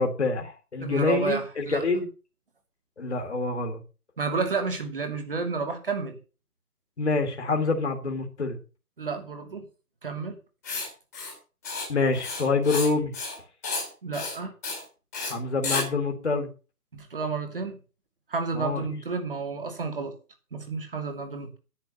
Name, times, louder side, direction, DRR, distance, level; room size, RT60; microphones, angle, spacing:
voice 1, 0.0-2.1 3.0-3.8 7.0-8.6 11.9-13.1 15.3-16.5 18.5-18.8, left 3 dB, 50° left, 4 dB, 2.3 m, -26 dB
voice 2, 0.8-1.8 4.2-6.2 9.0-9.7 10.0-10.4 14.0-14.5 16.9-17.8 18.3-20.1 20.5-21.6, right 4 dB, 35° right, 6 dB, 2.6 m, -31 dB
Writing, 10.6-10.9 11.1-11.3 11.6-11.9 12.1-12.9 13.1-13.4 13.6-13.9 14.1-14.3 14.6-14.8 15.1-15.3 15.6-15.8, left 3 dB, 10° left, 2.2 m, -31 dB
10.5 x 8.5 x 6.5 m, 0.34 s
hypercardioid pair, 180°, 45 cm